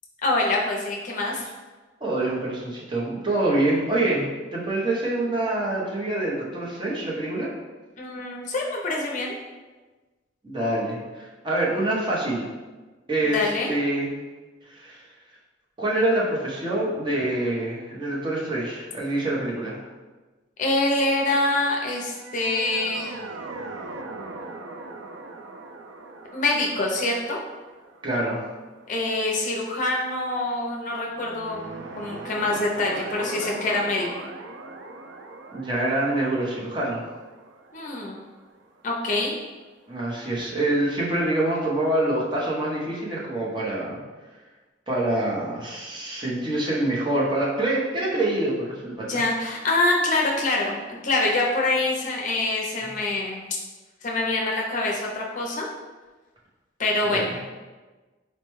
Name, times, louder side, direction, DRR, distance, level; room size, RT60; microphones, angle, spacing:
voice 1, 0.2-1.4 8.0-9.4 13.2-13.8 20.6-23.2 26.3-27.4 28.9-34.1 37.7-38.1 38.8-39.3 49.1-53.4 54.0-55.7 56.8-57.3, left 2 dB, 45° left, -2 dB, 0.5 m, -25 dB
voice 2, 2.0-7.5 10.4-12.5 13.1-14.1 14.6-15.0 15.8-19.8 28.0-28.4 35.5-37.0 39.9-44.0 44.9-49.2 57.1-57.3, right 1 dB, 25° right, -5 dB, 0.7 m, -26 dB
sound 1, 22.0-29.3 31.1-38.9, right 3 dB, 80° right, 0.3 m, -40 dB
4.2 x 2.2 x 3.0 m, 1.3 s
head